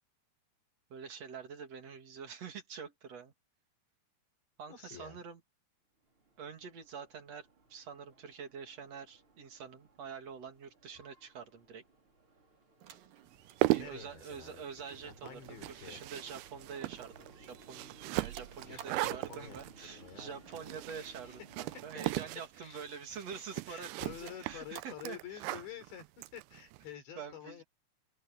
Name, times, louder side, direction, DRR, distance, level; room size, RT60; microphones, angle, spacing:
voice 1, 0.9-3.3 4.6-5.4 6.4-11.8 13.7-25.4 27.2-27.6, right 6 dB, 45° right, 2.8 m, -46 dB
voice 2, 4.7-5.2 13.7-16.0 18.5-20.4 20.7-21.4 22.6-22.8 23.1-23.2 23.7-27.6, left 9 dB, 90° left, 6.8 m, -49 dB
sound 1, 6.0-22.3, right 3 dB, 30° right, 6.0 m, -60 dB
sound 2, 12.8-16.9 17.2-19.2 20.5-21.4 21.9-22.1 22.8-23.4 23.8-25.2 26.4-26.5, right 11 dB, 65° right, 2.9 m, -57 dB
sound 3, 13.3-26.8, right 19 dB, 85° right, 2.3 m, -38 dB
omnidirectional pair, 5.0 m